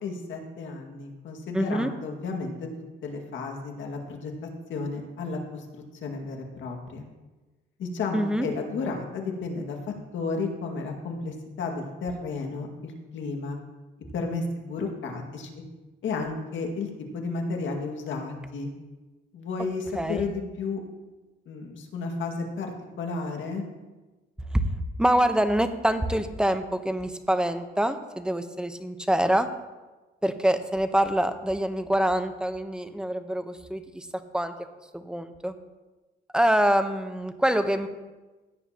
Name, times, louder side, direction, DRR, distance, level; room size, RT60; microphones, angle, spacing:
voice 1, 0.0-2.7 3.0-4.3 4.7-5.6 6.0-7.0 7.8-9.8 10.1-13.6 14.1-15.5 16.0-18.7 19.3-20.8 21.5-23.6, left 4 dB, 75° left, 2 dB, 2.1 m, -32 dB
voice 2, 1.5-1.9 8.1-8.5 19.9-20.3 25.0-29.5 30.2-34.1 34.3-34.5 34.9-35.5 36.3-37.9, right 1 dB, 5° right, 8 dB, 0.9 m, -25 dB
16.5 x 9.1 x 2.9 m, 1.2 s
cardioid pair, 90°, 20 cm